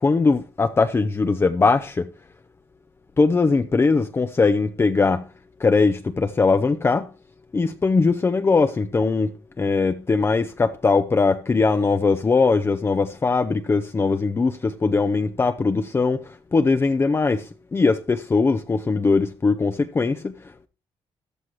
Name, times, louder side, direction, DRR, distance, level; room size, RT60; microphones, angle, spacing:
voice 1, 0.0-2.1 3.2-5.2 5.6-7.1 7.5-9.3 9.6-16.2 16.5-20.3, left 4 dB, 25° left, 0.6 m, -20 dB
13.5 x 12.5 x 3.1 m
cardioid pair, 95°, 10 cm